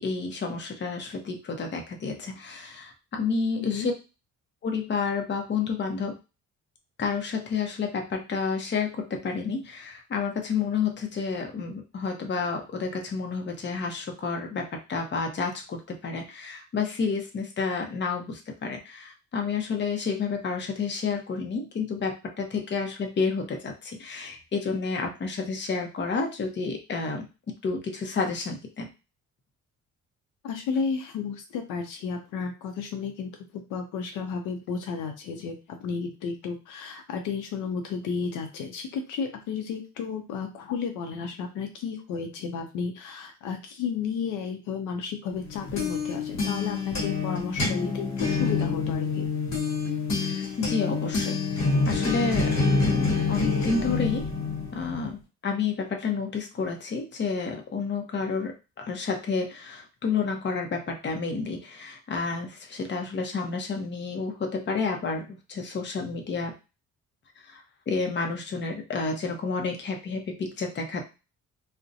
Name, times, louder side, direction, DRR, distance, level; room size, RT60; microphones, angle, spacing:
voice 1, 0.0-3.9 4.6-6.2 7.0-27.3 27.6-28.9 50.3-51.4 51.9-52.6 52.9-54.3 54.7-66.5 67.5-71.0, left 4 dB, 35° left, 3 dB, 0.7 m, -30 dB
voice 2, 3.6-3.9 30.4-49.3, left 6 dB, 90° left, 5 dB, 0.6 m, -33 dB
sound 1, 45.4-55.1, left 4 dB, 60° left, 1.0 m, -27 dB
2.4 x 2.1 x 2.6 m, 0.30 s
cardioid pair, 90°, 30 cm